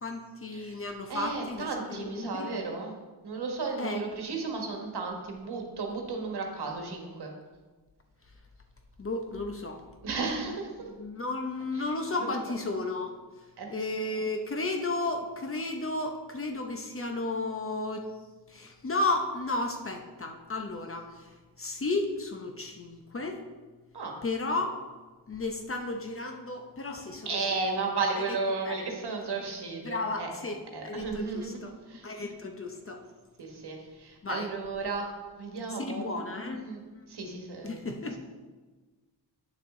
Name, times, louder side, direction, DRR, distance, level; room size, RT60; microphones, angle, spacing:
voice 1, 0.0-2.5 3.8-4.0 9.0-9.8 10.5-10.6 10.9-13.2 13.7-18.1 18.5-23.4 24.2-24.8 25.3-27.5 28.2-28.3 28.7-28.9 29.8-31.7 32.0-33.0 34.2-34.5 35.8-36.7 36.9-37.0 37.6-38.2, left 2 dB, 30° left, 3 dB, 0.7 m, -33 dB
voice 2, 1.1-2.9 3.2-7.3 10.0-10.7 11.8-11.9 12.2-12.3 13.6-13.7 23.9-24.1 27.2-30.3 30.7-31.6 31.9-32.2 33.4-35.1 35.4-36.1 36.6-36.8 37.1-37.8, right 4 dB, 60° right, 2 dB, 1.5 m, -34 dB
8.9 x 6.4 x 3.7 m, 1.3 s
wide cardioid pair, 125°, 44 cm